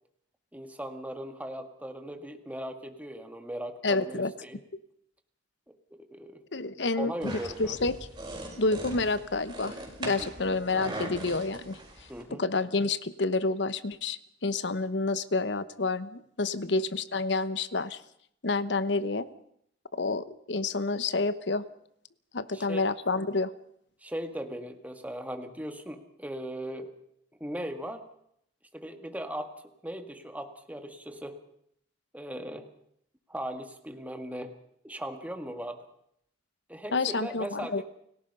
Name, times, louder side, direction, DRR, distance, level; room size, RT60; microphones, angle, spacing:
voice 1, 0.5-4.6 5.7-6.4 7.0-7.8 10.2-10.6 12.1-12.4 22.5-22.8 24.0-26.9 27.4-28.1 28.7-29.5 29.8-31.4 32.1-32.7 33.3-34.5 34.8-35.8 36.7-37.8, equal, 10° right, 7 dB, 1.8 m, -38 dB
voice 2, 3.8-4.3 6.5-8.0 8.6-11.8 12.4-18.0 18.4-19.3 19.9-21.6 22.3-23.5 36.9-37.8, left 3 dB, 65° left, 15 dB, 1.1 m, -29 dB
sound 1, 7.2-12.2, right 1 dB, 25° right, 5.6 m, -40 dB
29.5 x 17.5 x 5.5 m, 0.71 s
head